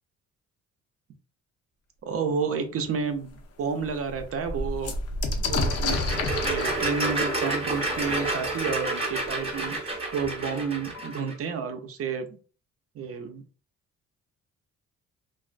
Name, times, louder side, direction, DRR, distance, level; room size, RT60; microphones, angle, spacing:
voice 1, 2.0-4.9 5.4-12.4 12.9-13.4, right 5 dB, 50° right, 6 dB, 0.5 m, -31 dB
sound 1, 2.8-2.9 3.4-3.5 3.7-9.3 10.2-10.3 10.6-11.2, left 2 dB, 55° left, 0.6 m, -31 dB
sound 2, 5.7-11.3, right 2 dB, 20° right, 0.8 m, -29 dB
2.3 x 2.2 x 2.4 m, 0.39 s
cardioid pair, 90°, 30 cm